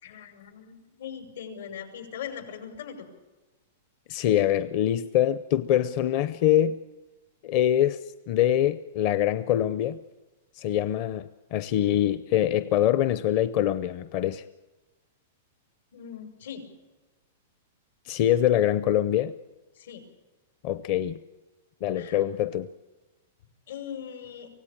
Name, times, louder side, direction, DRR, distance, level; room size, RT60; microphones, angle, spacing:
voice 1, 0.0-3.0 15.9-16.6 19.7-20.0 21.9-22.2 23.7-24.5, left 8 dB, 80° left, 7 dB, 6.0 m, -40 dB
voice 2, 4.1-6.8 7.4-10.0 10.5-14.4 18.1-19.3 20.6-21.2 21.8-22.7, left 11 dB, 35° left, 13 dB, 0.7 m, -24 dB
24.5 x 17.0 x 8.7 m, 1.2 s
supercardioid pair, 165°, 0 cm